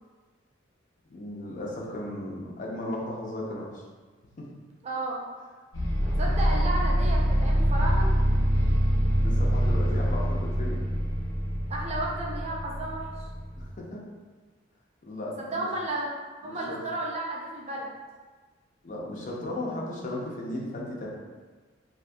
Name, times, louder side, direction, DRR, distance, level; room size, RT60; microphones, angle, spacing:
voice 1, 1.1-3.8 4.4-4.5 9.2-10.8 13.6-14.0 15.0-15.7 16.4-16.8 18.8-21.1, left 1 dB, 40° left, -3 dB, 0.4 m, -36 dB
voice 2, 4.8-5.2 6.2-8.1 11.7-13.3 15.4-16.1 16.4-17.9, right 2 dB, 35° right, -2 dB, 0.4 m, -33 dB
sound 1, 5.7-13.6, equal, 70° left, 0.7 m, -25 dB
2.4 x 2.2 x 2.6 m, 1.4 s
head